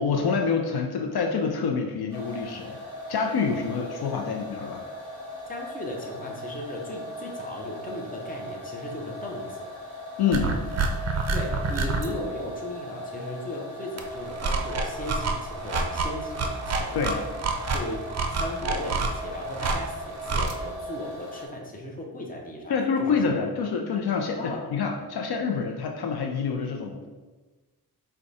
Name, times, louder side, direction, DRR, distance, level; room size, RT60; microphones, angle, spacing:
voice 1, 0.0-2.8 3.1-4.8 10.2-10.5 17.0-17.2 22.7-27.1, left 5 dB, 70° left, 3 dB, 0.5 m, -27 dB
sound 1, 2.1-21.5, equal, 5° right, 1.4 m, -39 dB
voice 2, 5.5-9.7 11.1-17.3 17.7-22.7 23.0-23.2 24.4-24.7, left 1 dB, 20° left, -1 dB, 0.7 m, -37 dB
sound 2, 10.3-12.1 14.0-20.5, right 3 dB, 40° right, 0.5 m, -28 dB
4.7 x 2.3 x 4.0 m, 1.3 s
wide cardioid pair, 110°, 39 cm